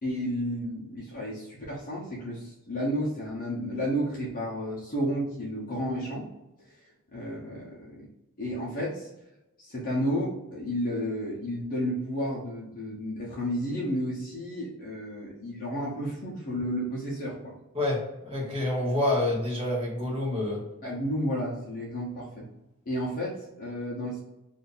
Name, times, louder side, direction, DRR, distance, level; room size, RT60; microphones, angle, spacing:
voice 1, 0.0-6.2 7.1-8.1 8.4-9.1 9.6-17.5 20.8-22.5 22.9-24.2, equal, 40° left, -6 dB, 0.9 m, -32 dB
voice 2, 17.7-20.6, left 1 dB, 25° right, -4 dB, 1.2 m, -28 dB
2.7 x 2.6 x 3.9 m, 0.94 s
head